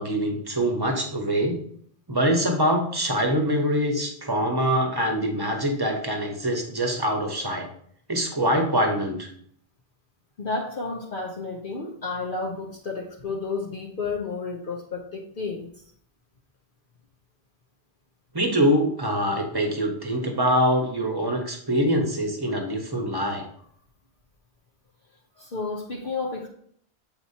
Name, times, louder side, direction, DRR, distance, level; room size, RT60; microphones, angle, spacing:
voice 1, 0.0-1.6 2.1-7.7 8.1-9.3 18.3-23.4, equal, 20° right, 2 dB, 1.0 m, -24 dB
voice 2, 10.4-15.7 25.4-26.5, left 3 dB, 55° left, -1 dB, 0.9 m, -31 dB
7.9 x 4.4 x 2.8 m, 0.62 s
omnidirectional pair, 1.1 m